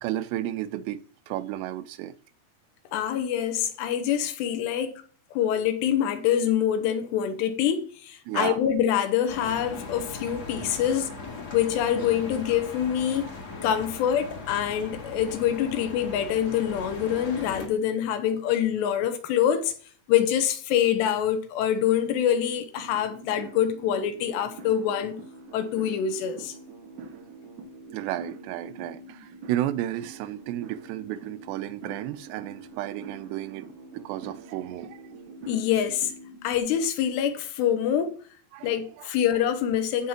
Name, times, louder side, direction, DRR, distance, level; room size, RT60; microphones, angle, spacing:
voice 1, 0.0-2.1 8.3-8.6 27.9-33.7 33.9-35.1 38.5-39.1, right 13 dB, 90° right, 2.8 m, -33 dB
voice 2, 2.9-4.9 5.3-11.2 11.5-13.3 13.6-19.7 20.1-25.2 25.5-26.5 35.5-36.1 36.4-38.2 38.6-40.1, left 9 dB, 85° left, 3.2 m, -25 dB
sound 1, 9.3-17.7, left 4 dB, 40° left, 1.5 m, -39 dB
sound 2, 22.8-36.6, right 3 dB, 70° right, 2.3 m, -45 dB
15.0 x 5.6 x 2.9 m
omnidirectional pair, 4.8 m